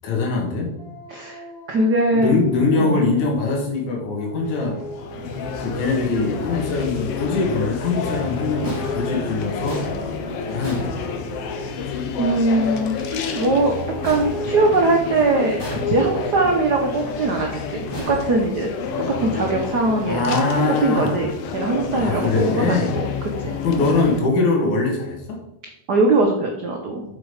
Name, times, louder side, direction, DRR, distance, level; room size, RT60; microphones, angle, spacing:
voice 1, 0.0-0.7 2.1-4.8 5.6-9.8 10.5-11.2 20.0-21.2 21.9-22.9 23.6-25.4, left 3 dB, 85° left, 0 dB, 3.3 m, -22 dB
Dog, 0.8-3.6 4.0-7.1 7.5-11.1, equal, 45° left, 3.4 m, -42 dB
voice 2, 1.1-2.4 2.8-3.0 5.2-5.3 12.2-13.0 13.2-13.8 14.0-18.7 19.1-23.8 25.9-27.0, right 2 dB, 80° right, 2 dB, 0.9 m, -21 dB
sound 1, 4.4-24.2, left 5 dB, 65° left, 1.6 m, -29 dB
sound 2, 8.6-11.7 14.0-15.1 15.6-16.4 17.9-19.0, right 1 dB, 10° left, 2.0 m, -35 dB
7.4 x 6.3 x 4.9 m, 0.86 s
omnidirectional pair, 3.3 m